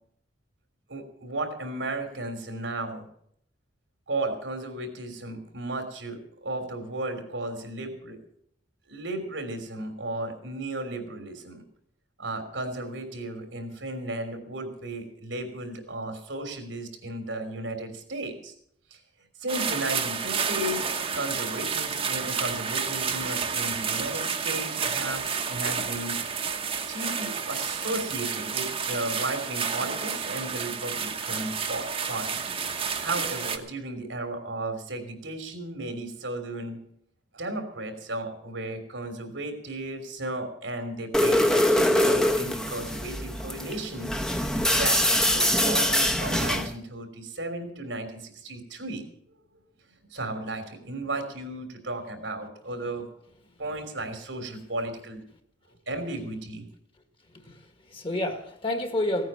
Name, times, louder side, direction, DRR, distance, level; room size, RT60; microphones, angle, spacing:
voice 1, 0.9-3.1 4.1-8.2 8.9-11.6 12.2-18.5 18.9-19.0 19.4-20.9 21.1-26.2 26.9-32.4 33.0-36.8 37.3-44.1 44.4-49.1 50.1-53.0 53.6-55.2 55.9-56.6, right 2 dB, 90° right, 5 dB, 3.3 m, -34 dB
sound 1, 19.5-33.6, right 6 dB, 30° right, 1.1 m, -30 dB
sound 2, 41.1-46.7, left 1 dB, 5° left, 0.9 m, -23 dB
voice 2, 57.3-59.3, left 1 dB, 30° left, 7 dB, 1.6 m, -30 dB
16.5 x 9.2 x 7.1 m, 0.68 s
head